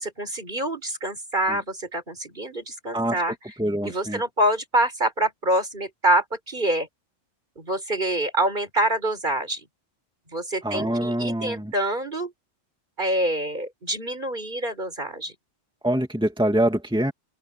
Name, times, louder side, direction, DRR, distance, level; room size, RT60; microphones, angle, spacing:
voice 1, 0.0-3.5 3.8-6.9 7.6-9.7 10.3-12.3 13.0-15.3, right 1 dB, 45° right, 4.7 m, -26 dB
voice 2, 3.6-4.2 10.6-11.7 15.8-17.1, right 1 dB, 5° right, 2.4 m, -24 dB
open air
omnidirectional pair, 1.2 m